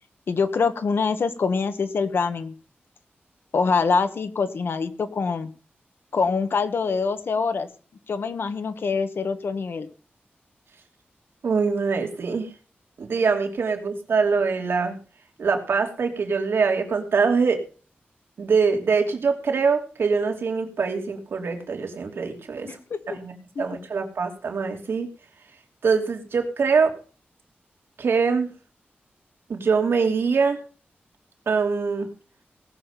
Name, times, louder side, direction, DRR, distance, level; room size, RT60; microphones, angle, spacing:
voice 1, 0.3-2.5 3.5-5.5 6.1-7.7 8.1-9.9 22.6-23.0 23.5-23.6, left 5 dB, 70° left, 10 dB, 1.5 m, -24 dB
voice 2, 11.4-12.5 13.0-15.0 15.4-17.6 18.4-22.7 23.2-23.3 23.6-25.1 25.8-26.9 28.0-28.5 29.5-30.6 31.5-32.1, right 5 dB, 80° right, 3 dB, 2.8 m, -23 dB
18.0 x 7.3 x 5.9 m, 0.38 s
wide cardioid pair, 155°, 4 cm